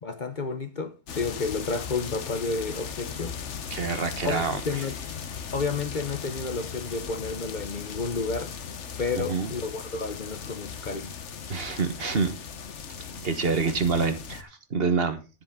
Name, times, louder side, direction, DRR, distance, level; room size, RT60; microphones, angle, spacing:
voice 1, 0.0-3.3 4.2-5.0 5.5-8.5 9.0-11.1, left 4 dB, 45° left, 1.0 m, -31 dB
sound 1, 1.1-14.4, left 7 dB, 75° left, 1.3 m, -38 dB
voice 2, 3.7-4.8 9.1-9.5 11.5-12.4 13.2-15.2, right 4 dB, 55° right, 1.5 m, -27 dB
10.5 x 10.0 x 3.7 m
omnidirectional pair, 1.2 m